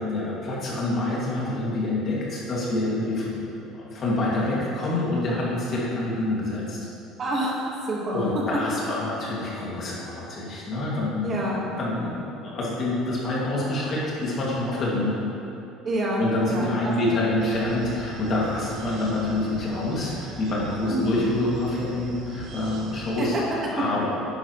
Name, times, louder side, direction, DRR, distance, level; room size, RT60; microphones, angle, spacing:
voice 1, 0.0-6.9 8.1-15.2 16.2-24.1, left 2 dB, 35° left, -5 dB, 2.2 m, -27 dB
voice 2, 7.2-8.2 11.2-11.7 15.8-17.1 20.9-21.2 23.2-23.4 24.0-24.1, right 1 dB, 25° right, -4 dB, 1.5 m, -28 dB
sound 1, 17.4-23.2, right 3 dB, 50° right, 1.1 m, -40 dB
12.0 x 10.5 x 3.1 m, 2.8 s
cardioid pair, 170°, 0 cm